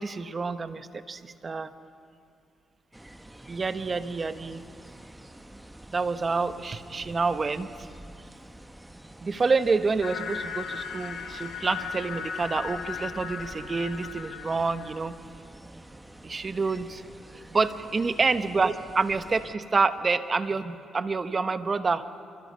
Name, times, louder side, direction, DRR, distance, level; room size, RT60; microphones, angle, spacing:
voice 1, 0.0-1.7 3.5-4.6 5.9-7.7 9.2-15.2 16.2-17.0 17.5-22.0, right 4 dB, 35° right, 11 dB, 1.1 m, -28 dB
sound 1, 2.9-19.6, right 1 dB, 10° right, 0.9 m, -48 dB
sound 2, 10.0-15.1, left 7 dB, 70° left, 2.0 m, -37 dB
26.5 x 24.5 x 5.6 m, 2.6 s
cardioid pair, 90°, 0 cm